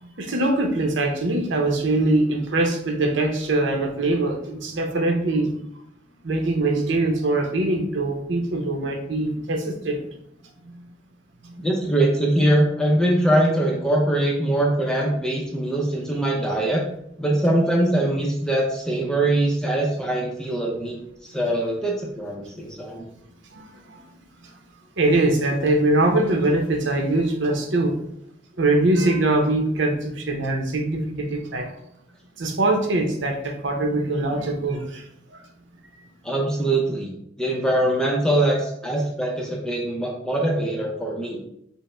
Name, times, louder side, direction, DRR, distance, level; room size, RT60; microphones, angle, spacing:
voice 1, 0.0-5.5 6.2-10.0 11.5-11.6 23.5-24.0 25.0-28.0 28.6-31.7 32.4-35.0, right 2 dB, 80° right, 3 dB, 0.8 m, -22 dB
voice 2, 11.6-16.8 17.2-21.0 21.3-23.1 36.2-37.1 37.4-41.4, right 1 dB, 5° left, -2 dB, 0.6 m, -22 dB
5.4 x 2.1 x 4.3 m, 0.74 s
head